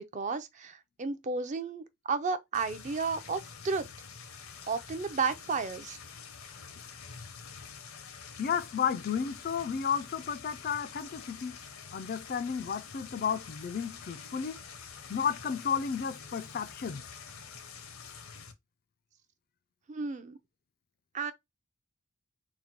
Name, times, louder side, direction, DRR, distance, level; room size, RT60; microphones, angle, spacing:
voice 1, 0.0-3.9 4.7-6.0 19.9-20.4 21.1-21.3, right 4 dB, 35° right, 0.5 m, -33 dB
sound 1, 2.5-18.5, left 6 dB, 70° left, 0.7 m, -47 dB
voice 2, 8.4-11.6 11.9-14.6 15.1-17.0, left 7 dB, 45° left, 0.3 m, -32 dB
3.9 x 2.2 x 4.4 m
head